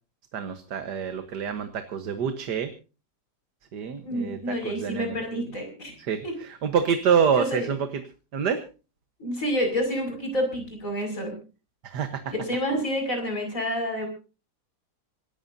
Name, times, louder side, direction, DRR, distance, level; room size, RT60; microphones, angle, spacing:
voice 1, 0.3-2.7 3.7-5.4 6.1-6.2 6.6-7.9 8.3-8.6 11.8-12.2, right 7 dB, 85° right, 8 dB, 1.8 m, -26 dB
voice 2, 4.0-6.0 6.2-6.3 7.3-7.7 9.2-11.3 12.3-14.1, equal, 50° left, 3 dB, 6.5 m, -28 dB
26.5 x 14.5 x 2.7 m, 0.34 s
omnidirectional pair, 1.7 m